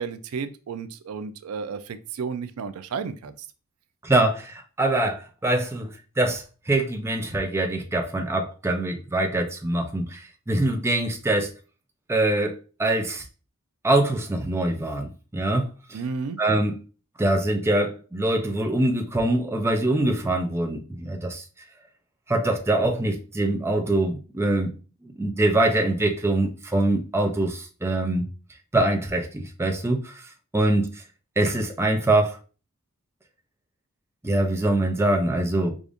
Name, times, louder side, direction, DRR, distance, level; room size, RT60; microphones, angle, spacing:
voice 1, 0.0-3.3 15.9-16.4, right 5 dB, 85° right, 0.4 m, -32 dB
voice 2, 4.0-11.5 12.1-13.2 13.8-16.0 16.4-16.8 17.2-21.4 22.3-24.7 25.2-28.3 28.7-31.0 31.4-32.4 34.2-35.8, right 2 dB, 10° right, 0.4 m, -24 dB
4.9 x 2.4 x 2.5 m
head